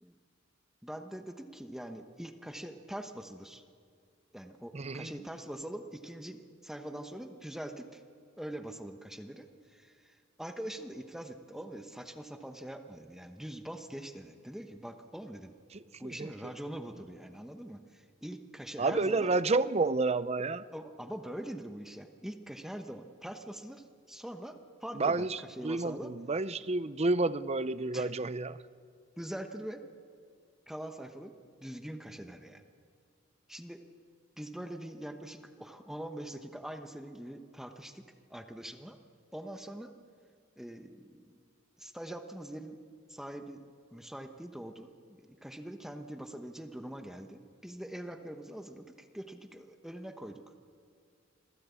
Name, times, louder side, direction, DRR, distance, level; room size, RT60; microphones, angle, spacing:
voice 1, 0.8-3.6 4.3-8.0 8.4-15.5 16.0-19.3 20.7-25.3 25.6-26.1 27.9-28.1 29.2-29.8 30.7-31.3 31.6-32.6 33.5-33.8 34.4-38.0 38.3-39.0 39.3-39.9 40.6-41.4 41.8-42.8 43.1-43.6 43.9-50.4, right 1 dB, ahead, 6 dB, 1.1 m, -43 dB
voice 2, 4.7-5.1 15.7-16.5 18.8-20.6 24.9-28.6, right 3 dB, 35° right, 15 dB, 0.6 m, -30 dB
26.5 x 16.0 x 8.3 m, 2.2 s
head